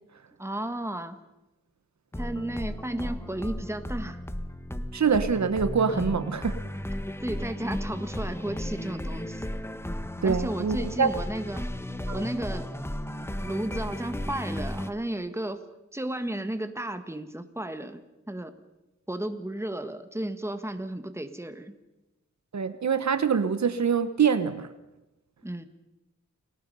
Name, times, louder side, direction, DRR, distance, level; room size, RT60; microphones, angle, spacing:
voice 1, 0.4-1.2 2.2-4.2 5.9-6.2 7.2-9.5 10.2-11.7 12.1-12.7 13.4-15.6 15.9-18.0 18.3-18.5 19.1-21.8 25.4-25.7, right 1 dB, 10° right, 9 dB, 1.6 m, -33 dB
sound 1, 2.1-14.9, left 1 dB, 10° left, 1.1 m, -34 dB
voice 2, 4.9-6.6 10.2-11.1 12.1-12.2 22.5-24.7, right 6 dB, 70° right, 12 dB, 1.0 m, -25 dB
29.0 x 18.5 x 5.5 m, 0.98 s
wide cardioid pair, 80°, 30 cm